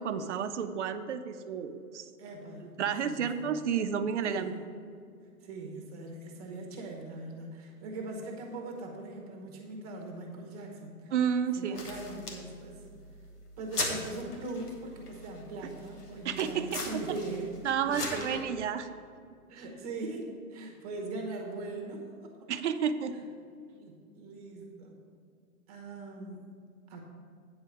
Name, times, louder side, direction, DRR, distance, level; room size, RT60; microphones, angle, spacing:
voice 1, 0.0-2.1 2.8-4.5 11.1-11.8 16.2-16.8 17.6-18.9 22.5-23.1, right 7 dB, 50° right, 8 dB, 0.7 m, -31 dB
voice 2, 2.2-2.7 3.0-3.5 4.3-4.6 5.4-11.1 11.6-12.9 13.6-17.5 17.8-18.3 19.5-22.3 23.1-23.2 23.7-25.0 25.7-26.5 26.9-27.0, right 2 dB, 25° right, 1 dB, 1.0 m, -41 dB
sound 1, 11.7-18.4, left 2 dB, 85° left, 1.9 m, -40 dB
8.9 x 4.8 x 6.9 m, 2.2 s
hypercardioid pair, 155°, 45 cm